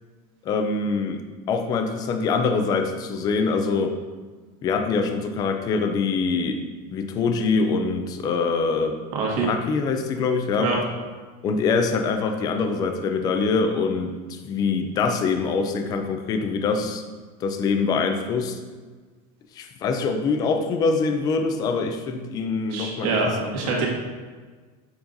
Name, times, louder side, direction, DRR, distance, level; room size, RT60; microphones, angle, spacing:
voice 1, 0.4-1.2 1.5-3.9 4.6-6.6 6.9-9.0 9.4-10.7 11.4-17.0 17.4-18.6 19.6-23.8, left 4 dB, 20° left, 5 dB, 0.4 m, -24 dB
voice 2, 9.1-9.5 10.6-10.8 22.7-23.3 23.5-23.9, right 4 dB, 65° right, -2 dB, 1.7 m, -24 dB
7.0 x 5.5 x 2.6 m, 1.4 s
cardioid pair, 180°, 19 cm